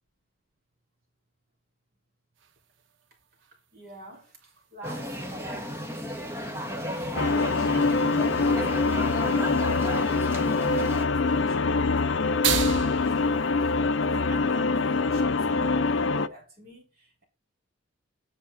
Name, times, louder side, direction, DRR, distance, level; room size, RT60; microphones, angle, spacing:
sound 1, 2.4-15.1, right 8 dB, 65° right, 0.7 m, -39 dB
voice 1, 3.7-5.8 6.3-7.9 9.2-17.2, right 1 dB, 50° right, 3.7 m, -44 dB
sound 2, 4.8-11.0, equal, 15° right, 1.5 m, -34 dB
sound 3, 7.2-16.3, left 3 dB, 65° left, 0.5 m, -24 dB
8.9 x 5.7 x 5.5 m
head